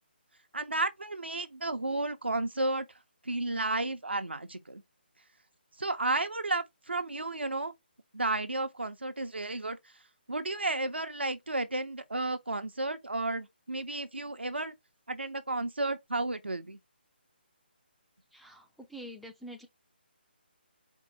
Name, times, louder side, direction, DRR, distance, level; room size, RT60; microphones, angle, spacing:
voice 1, 0.5-2.9 3.2-4.8 5.8-7.7 8.1-9.8 10.3-14.7 15.1-16.8, right 2 dB, 85° right, 0.7 m, -32 dB
voice 2, 18.3-18.6 18.9-19.7, equal, ahead, 0.5 m, -45 dB
4.5 x 2.1 x 4.0 m
figure-of-eight pair, 145°, 6 cm